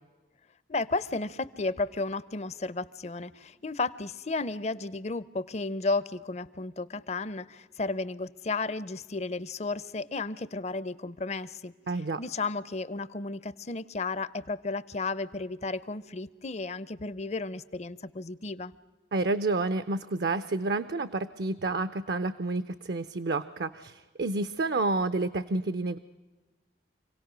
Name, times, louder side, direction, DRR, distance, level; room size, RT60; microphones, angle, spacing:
voice 1, 0.7-11.7 12.2-18.7, left 3 dB, 35° left, 17 dB, 0.6 m, -33 dB
voice 2, 11.9-12.2 19.1-26.0, right 3 dB, 60° right, 13 dB, 0.6 m, -29 dB
26.5 x 17.5 x 6.2 m, 1.2 s
head